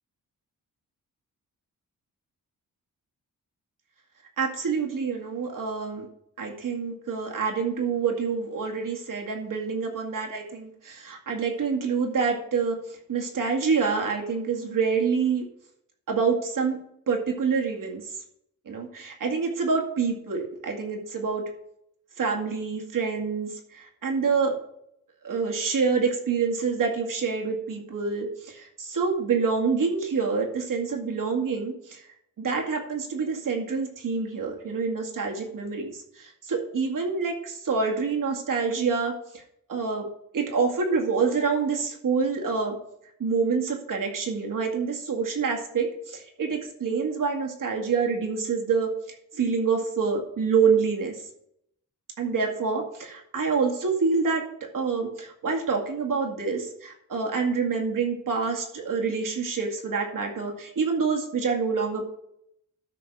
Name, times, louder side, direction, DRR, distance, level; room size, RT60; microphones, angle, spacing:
voice 1, 4.4-6.1 6.4-15.4 16.1-16.8 17.1-18.2 18.7-21.4 22.2-24.6 25.2-32.1 32.4-39.4 39.7-40.1 40.3-42.8 43.2-48.9 49.3-51.2 52.2-54.4 54.7-62.0, right 5 dB, 65° right, 1 dB, 2.3 m, -27 dB
12.5 x 4.3 x 6.1 m, 0.74 s
cardioid pair, 100°, 35 cm